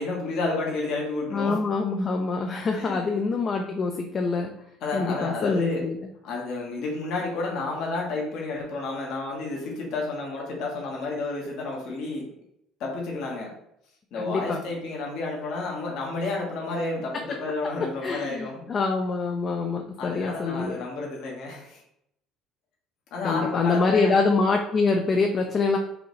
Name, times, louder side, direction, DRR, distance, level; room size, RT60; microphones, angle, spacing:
voice 1, 0.0-1.6 2.7-3.1 4.8-5.8 6.2-12.3 12.8-13.5 14.1-18.5 20.0-21.8 23.1-24.1, left 3 dB, 65° left, -2 dB, 1.2 m, -31 dB
voice 2, 1.3-4.5 4.9-6.0 14.3-14.6 18.0-20.8 23.2-25.8, left 4 dB, 35° left, 3 dB, 0.4 m, -25 dB
4.8 x 2.5 x 3.1 m, 0.77 s
cardioid pair, 105°, 0 cm